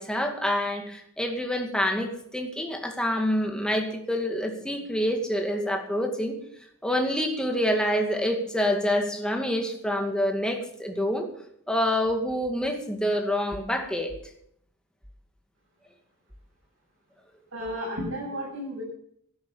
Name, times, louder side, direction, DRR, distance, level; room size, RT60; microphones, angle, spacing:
voice 1, 0.0-6.4 6.8-11.3 11.7-14.1, equal, 5° left, 3 dB, 2.2 m, -27 dB
voice 2, 17.5-18.8, equal, 60° right, -7 dB, 7.5 m, -33 dB
12.5 x 11.0 x 7.1 m, 0.68 s
head